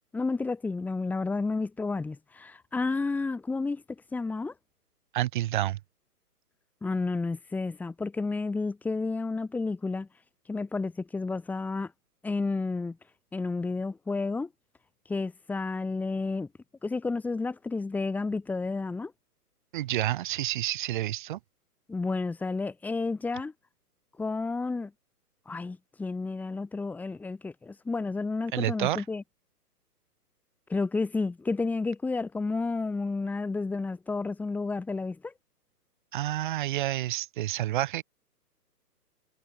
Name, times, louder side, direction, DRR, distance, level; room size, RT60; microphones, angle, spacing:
voice 1, 0.1-3.8 4.1-4.5 6.8-10.1 10.5-11.9 12.2-13.0 13.3-14.5 15.1-16.5 16.8-19.1 21.9-23.5 24.2-24.9 25.5-29.2 30.7-35.3, left 3 dB, 5° left, 4.3 m, -31 dB
voice 2, 5.1-5.8 19.7-21.4 28.5-29.0 36.1-38.0, right 14 dB, 30° right, 6.9 m, -29 dB
hypercardioid pair, 165°, 48 cm